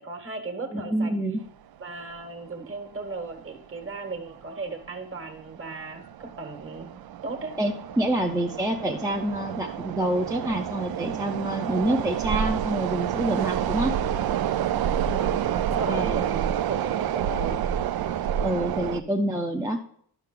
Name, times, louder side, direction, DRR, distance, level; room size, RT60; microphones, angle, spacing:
voice 1, 0.0-1.1 1.8-6.9 7.2-7.6 15.1-17.7, right 3 dB, 35° right, 6 dB, 1.4 m, -36 dB
voice 2, 0.7-1.4 7.6-13.9 15.9-16.2 18.4-19.8, right 1 dB, 10° right, 1 dB, 0.6 m, -27 dB
sound 1, 2.1-2.2 2.5-2.6 3.3-3.5 3.8-4.0 4.5-4.9 5.4-19.0, right 10 dB, 70° right, 0.5 m, -29 dB
11.5 x 5.7 x 3.7 m, 0.62 s
wide cardioid pair, 180°, 38 cm